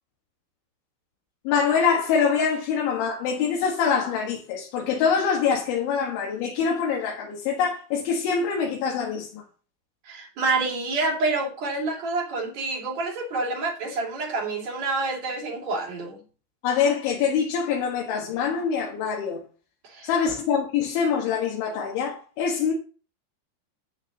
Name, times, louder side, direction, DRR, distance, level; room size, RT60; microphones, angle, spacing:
voice 1, 1.5-9.4 16.6-19.4 20.0-22.7, left 6 dB, 80° left, 4.1 m, -24 dB
voice 2, 10.0-16.2 19.8-20.1, right 3 dB, 45° right, 3.3 m, -28 dB
13.0 x 9.4 x 3.0 m
omnidirectional pair, 5.4 m